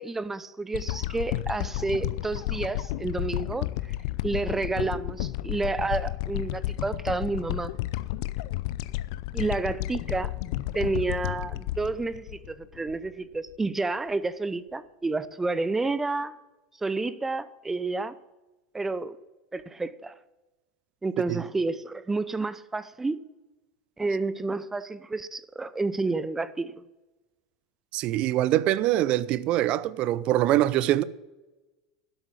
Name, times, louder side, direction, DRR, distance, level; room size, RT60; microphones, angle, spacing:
voice 1, 0.0-3.7 4.2-7.7 9.3-10.3 10.7-16.4 16.8-18.1 18.7-19.2 19.5-20.1 21.0-23.2 24.0-26.7, right 3 dB, 15° right, 0.7 m, -30 dB
sound 1, 0.7-13.1 13.5-13.6, left 16 dB, 65° left, 0.5 m, -32 dB
voice 2, 27.9-31.0, right 14 dB, 50° right, 0.6 m, -24 dB
12.5 x 7.5 x 7.4 m
hypercardioid pair, 90°, 2 cm